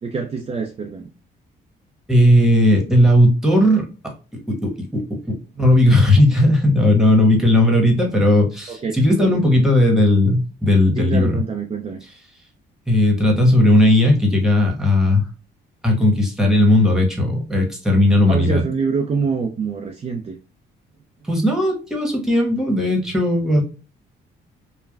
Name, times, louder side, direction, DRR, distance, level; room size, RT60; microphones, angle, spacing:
voice 1, 0.0-1.1 8.7-9.5 11.0-12.0 18.2-20.4, right 5 dB, 30° right, 2 dB, 0.4 m, -25 dB
voice 2, 2.1-4.1 4.5-5.2 5.6-11.4 12.9-15.2 15.8-18.6 21.3-23.6, left 1 dB, 5° right, 0 dB, 1.1 m, -16 dB
3.2 x 2.2 x 2.2 m, 0.34 s
cardioid pair, 90°, 20 cm